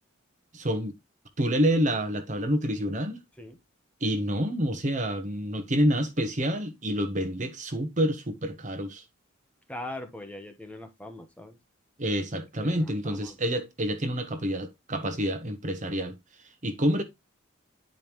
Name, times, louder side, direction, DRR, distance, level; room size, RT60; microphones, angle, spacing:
voice 1, 0.5-0.9 1.4-3.2 4.0-9.0 12.0-16.2 16.6-17.0, equal, 35° right, 1.1 m, -28 dB
voice 2, 9.7-11.6 12.6-13.4, left 1 dB, 5° left, 1.0 m, -41 dB
9.2 x 5.2 x 3.0 m
head